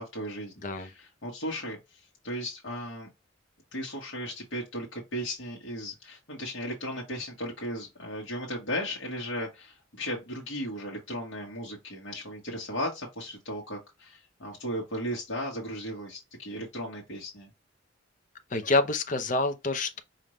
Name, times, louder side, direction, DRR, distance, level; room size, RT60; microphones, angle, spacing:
voice 1, 0.0-3.1 3.7-17.5, equal, 75° left, 1.4 m, -36 dB
voice 2, 18.5-20.0, left 3 dB, 40° left, 0.7 m, -27 dB
5.2 x 2.7 x 3.1 m
head